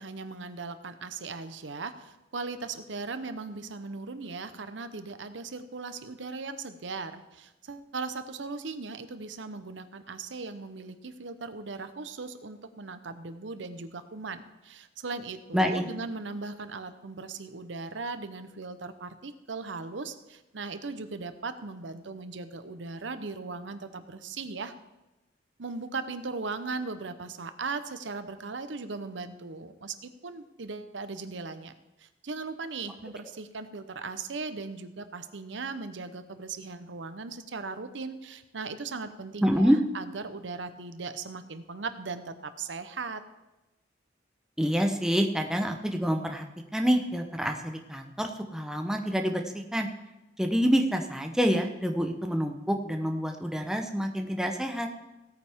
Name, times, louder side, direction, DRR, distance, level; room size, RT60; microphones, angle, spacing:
voice 1, 0.0-24.7 25.6-31.7 32.0-43.2, right 4 dB, 85° right, 10 dB, 0.8 m, -38 dB
voice 2, 15.5-15.9 39.4-39.8 44.6-46.4 46.7-49.9 50.4-54.9, equal, 5° right, 3 dB, 0.8 m, -27 dB
17.0 x 9.0 x 3.6 m, 1.0 s
head